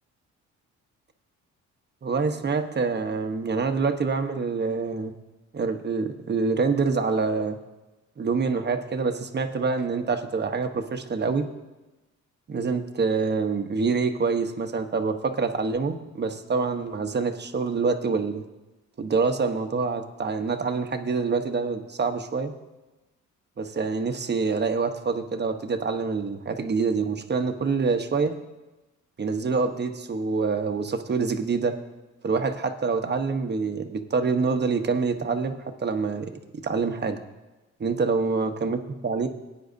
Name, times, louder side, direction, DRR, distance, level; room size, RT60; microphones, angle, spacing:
voice 1, 2.0-5.1 5.5-7.6 8.2-11.5 12.5-18.4 19.0-22.5 23.6-28.3 29.2-31.7 32.2-36.3 36.6-37.2 37.8-39.3, right 4 dB, 35° right, 7 dB, 1.0 m, -26 dB
18.0 x 9.6 x 2.7 m, 1.1 s
cardioid pair, 90°, 30 cm